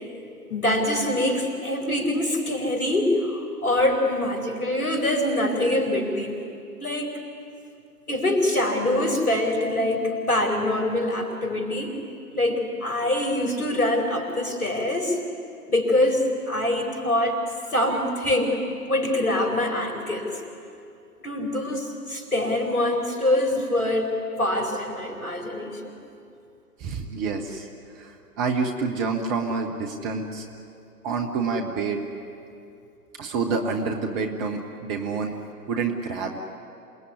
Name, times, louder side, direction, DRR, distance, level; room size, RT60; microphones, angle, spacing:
voice 1, 0.5-6.4 6.8-7.1 8.1-12.0 12.3-15.2 15.7-17.4 17.7-18.6 18.9-20.3 21.2-24.1 24.4-26.0, left 1 dB, 65° left, 2 dB, 5.1 m, -24 dB
voice 2, 26.8-27.7 27.9-30.4 31.0-32.0 33.2-35.3 35.7-36.4, right 4 dB, 15° right, 3 dB, 0.8 m, -28 dB
27.0 x 19.0 x 9.7 m, 2.6 s
figure-of-eight pair, 125°, 47 cm